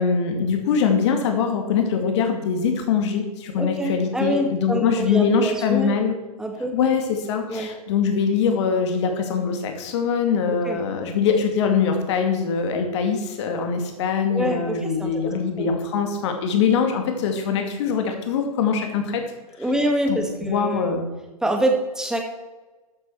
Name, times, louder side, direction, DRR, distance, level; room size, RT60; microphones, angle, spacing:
voice 1, 0.0-6.1 6.7-19.2 20.1-21.1, left 6 dB, 45° left, 4 dB, 2.4 m, -23 dB
voice 2, 3.6-6.0 6.4-6.8 7.5-7.7 10.7-10.8 14.3-15.7 19.6-20.9 21.4-22.2, right 1 dB, 5° right, 3 dB, 1.9 m, -25 dB
14.0 x 8.8 x 4.7 m, 1.2 s
figure-of-eight pair, 120°, 20 cm